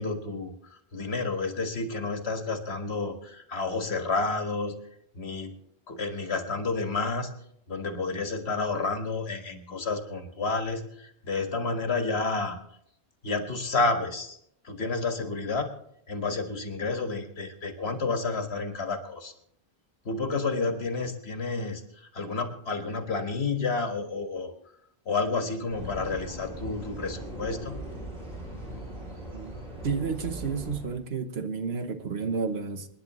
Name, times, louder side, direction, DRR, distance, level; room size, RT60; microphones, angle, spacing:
voice 1, 0.0-4.7 5.1-5.6 5.9-7.3 7.7-12.6 13.2-14.4 14.6-15.7 16.1-19.3 20.1-24.5 25.1-27.8, left 3 dB, 75° left, 1.9 m, -30 dB
sound 1, 25.7-31.0, right 1 dB, 45° right, 6.7 m, -39 dB
voice 2, 29.8-32.9, right 5 dB, 75° right, 1.3 m, -31 dB
27.5 x 10.0 x 3.1 m
omnidirectional pair, 1.1 m